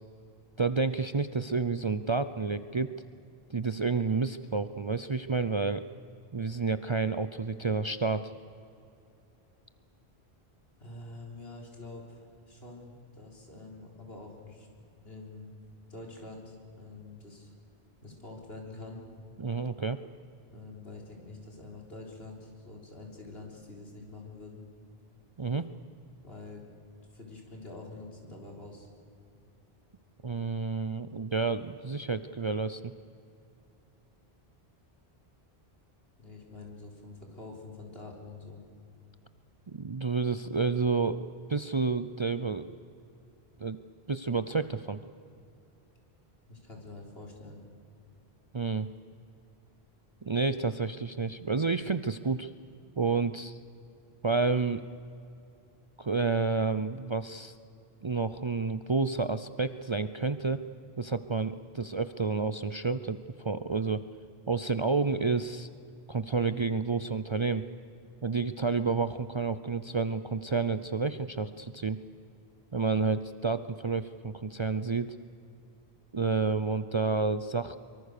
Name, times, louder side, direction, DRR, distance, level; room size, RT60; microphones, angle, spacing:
voice 1, 0.6-2.9 3.5-5.9 6.3-8.3 19.4-20.0 25.4-25.7 30.2-32.9 39.7-41.2 41.5-42.7 43.6-43.8 44.1-45.0 48.5-48.9 50.2-52.5 53.0-53.6 54.2-54.8 56.0-57.5 58.0-60.6 61.0-64.0 64.5-65.7 66.1-67.6 68.2-72.0 72.7-75.2 76.1-77.8, right 4 dB, 35° right, 11 dB, 0.5 m, -30 dB
voice 2, 10.8-15.6 15.9-17.5 18.0-19.0 20.5-24.6 26.2-26.6 27.1-28.9 36.2-38.6 46.5-47.6, left 2 dB, 70° left, 0 dB, 4.3 m, -46 dB
24.0 x 23.5 x 6.7 m, 2.5 s
omnidirectional pair, 1.1 m